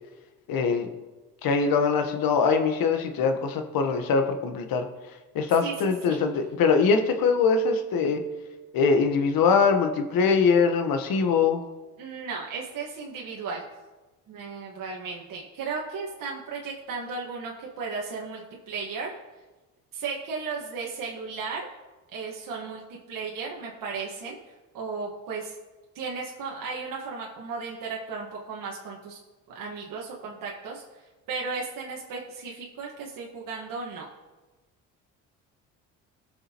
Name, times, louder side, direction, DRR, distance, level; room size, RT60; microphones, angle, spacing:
voice 1, 0.5-0.9 1.4-4.9 5.3-8.2 8.7-11.6, left 5 dB, 65° left, 6 dB, 1.3 m, -22 dB
voice 2, 5.6-6.2 12.0-13.6 14.3-19.1 19.9-21.6 22.1-24.4 24.7-25.5 25.9-29.2 29.5-30.8 31.3-34.1, right 4 dB, 60° right, -2 dB, 1.7 m, -35 dB
18.5 x 6.6 x 3.0 m, 1.2 s
supercardioid pair, 75°, 38 cm